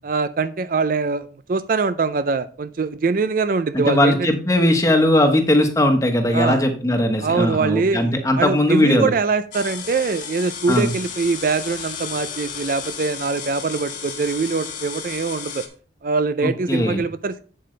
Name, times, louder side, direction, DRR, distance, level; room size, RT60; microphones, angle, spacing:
voice 1, 0.0-4.3 6.3-6.6 7.2-15.6 16.0-17.4, right 4 dB, 50° right, 12 dB, 0.4 m, -23 dB
voice 2, 3.7-9.1 10.7-10.9 16.4-17.0, left 1 dB, 20° left, 5 dB, 1.1 m, -19 dB
sound 1, 9.5-15.7, left 7 dB, 45° left, 1.3 m, -33 dB
8.4 x 7.6 x 3.3 m, 0.41 s
head